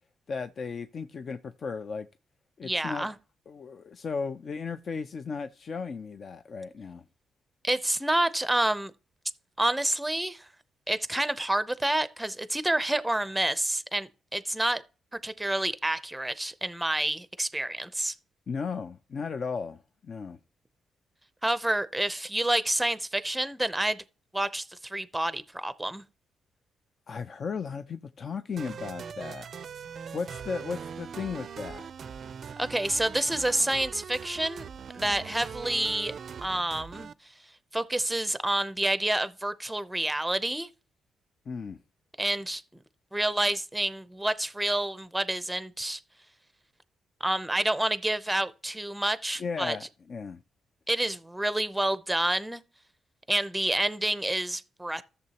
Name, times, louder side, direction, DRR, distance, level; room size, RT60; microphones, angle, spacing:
voice 1, 0.3-2.1 2.6-3.1 3.5-7.0 18.5-20.4 27.1-29.5 30.1-31.9 41.5-41.8 49.4-49.8 50.1-50.4, left 5 dB, 50° left, 0.4 m, -35 dB
voice 2, 2.6-3.1 7.6-8.9 9.6-10.5 10.9-14.8 15.2-18.1 21.4-24.0 24.3-26.0 32.6-34.7 34.9-36.1 36.4-37.1 37.7-40.7 42.2-42.8 43.1-46.0 47.2-49.8 50.9-52.6 53.3-55.0, right 1 dB, 5° right, 0.6 m, -28 dB
sound 1, 28.6-37.1, right 7 dB, 50° right, 0.4 m, -41 dB
13.5 x 6.9 x 2.9 m
cardioid pair, 105°, 0 cm